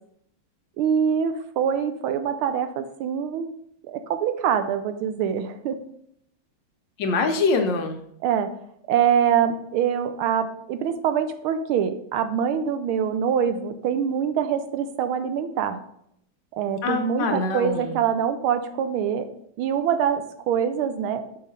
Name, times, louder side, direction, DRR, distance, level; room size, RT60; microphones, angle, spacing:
voice 1, 0.8-3.5 3.9-5.8 8.2-8.5 8.9-15.8 16.5-19.3 19.6-21.2, right 8 dB, 85° right, 9 dB, 1.5 m, -24 dB
voice 2, 7.0-8.0 16.8-18.0, left 4 dB, 70° left, 5 dB, 1.3 m, -24 dB
7.2 x 4.8 x 4.0 m, 0.72 s
omnidirectional pair, 2.3 m